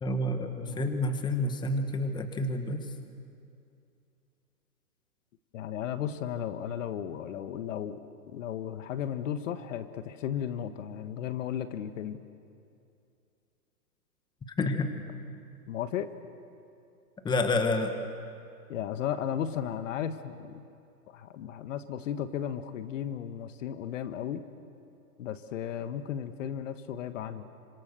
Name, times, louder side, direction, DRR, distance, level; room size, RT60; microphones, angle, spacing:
voice 1, 0.0-2.8 14.6-14.9 17.2-17.9, left 2 dB, 10° left, 7 dB, 1.5 m, -29 dB
voice 2, 5.5-8.0 8.3-12.2 15.7-16.1 18.7-20.6 21.1-24.4 25.2-27.4, left 9 dB, 50° left, 10 dB, 1.5 m, -35 dB
29.0 x 26.0 x 6.8 m, 2.6 s
hypercardioid pair, 140°, 47 cm